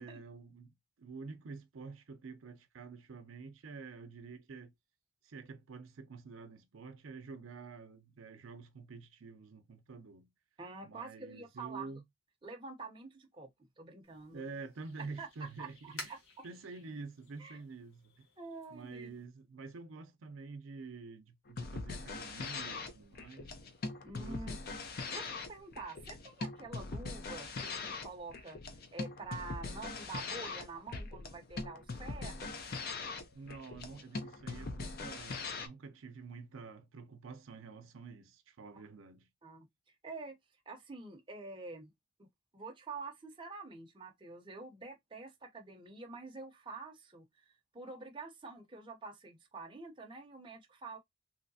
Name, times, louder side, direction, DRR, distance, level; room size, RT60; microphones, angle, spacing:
voice 1, 0.0-4.7 5.2-10.3 10.8-12.0 14.3-16.2 16.4-18.3 18.7-23.6 24.2-24.6 33.3-39.3, right 4 dB, 80° right, 0.5 m, -48 dB
voice 2, 10.6-12.0 12.4-13.5 13.8-14.5 15.2-16.2 17.4-17.6 18.4-19.1 24.0-24.6 25.1-28.6 28.9-32.6 38.7-38.8 39.4-39.7 40.0-40.4 40.7-41.9 42.2-42.3 42.5-51.0, right 3 dB, 25° right, 0.6 m, -47 dB
sound 1, 14.0-19.2, left 2 dB, 75° left, 1.6 m, -53 dB
sound 2, 21.5-35.7, left 3 dB, 50° left, 0.5 m, -41 dB
3.2 x 2.7 x 2.6 m
head